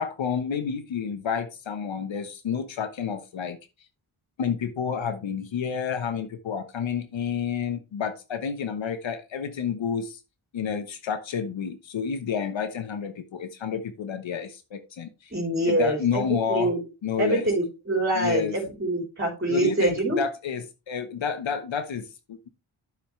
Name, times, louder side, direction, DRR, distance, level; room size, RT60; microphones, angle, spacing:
voice 1, 0.0-3.6 4.4-10.2 10.5-15.3 15.6-16.7 17.0-17.5 18.1-18.5 19.5-22.5, left 7 dB, 65° left, 10 dB, 1.2 m, -30 dB
voice 2, 15.3-16.8 17.2-20.2, right 1 dB, 25° right, 0 dB, 3.7 m, -25 dB
9.7 x 7.0 x 3.2 m, 0.27 s
supercardioid pair, 45°, 49 cm